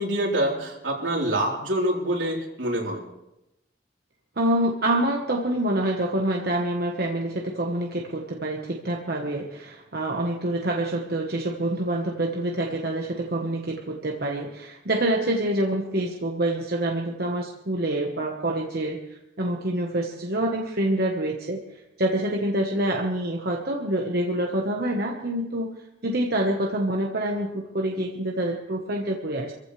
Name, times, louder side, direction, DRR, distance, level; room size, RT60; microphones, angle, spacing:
voice 1, 0.0-3.0, right 1 dB, 80° right, -2 dB, 3.9 m, -26 dB
voice 2, 4.4-25.7 26.0-29.6, right 1 dB, 50° right, 0 dB, 1.2 m, -26 dB
26.0 x 15.0 x 3.3 m, 0.88 s
head